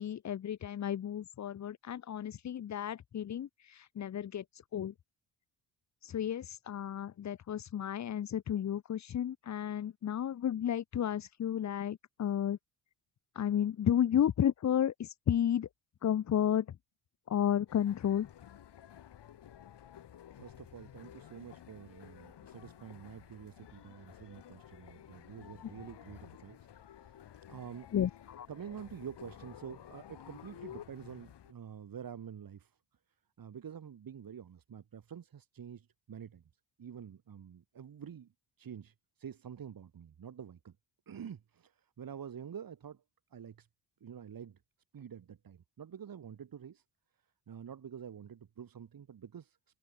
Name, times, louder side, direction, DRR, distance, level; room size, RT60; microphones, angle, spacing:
voice 1, 0.0-4.9 6.0-12.6 13.4-15.7 16.0-16.7 17.3-18.3 27.9-28.5, left 10 dB, 40° left, 0.8 m, -32 dB
sound 1, 17.7-31.5, left 10 dB, 65° left, 6.9 m, -53 dB
voice 2, 20.3-27.2 27.5-27.9 28.5-32.8 33.4-36.4 36.8-38.3 38.6-40.8 41.1-43.0 43.3-43.7 44.0-44.6 44.9-46.8 47.5-49.6, right 8 dB, 50° right, 3.8 m, -48 dB
cardioid pair, 95°, 44 cm